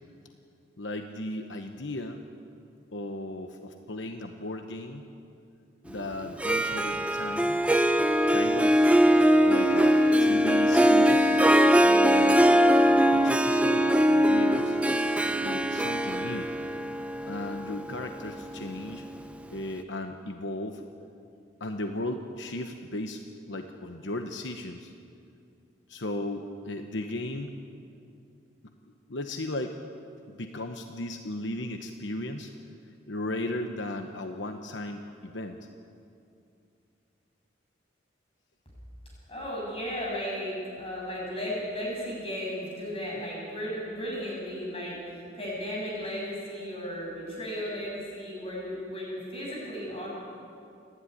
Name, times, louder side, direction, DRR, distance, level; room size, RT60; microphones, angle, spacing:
voice 1, 0.8-2.2 2.9-5.0 5.8-7.6 8.3-8.8 9.4-11.3 11.8-12.5 13.1-14.8 15.4-16.5 17.3-19.1 19.5-20.8 21.6-23.2 23.5-24.9 25.9-27.6 28.6-28.7 29.1-29.8 30.3-32.5 33.1-35.6, left 1 dB, 80° left, 5 dB, 1.1 m, -36 dB
Harp, 6.3-19.2, equal, 5° right, 0.7 m, -22 dB
voice 2, 39.3-50.1, equal, 30° left, -4 dB, 7.9 m, -35 dB
28.5 x 11.5 x 9.9 m, 2.5 s
head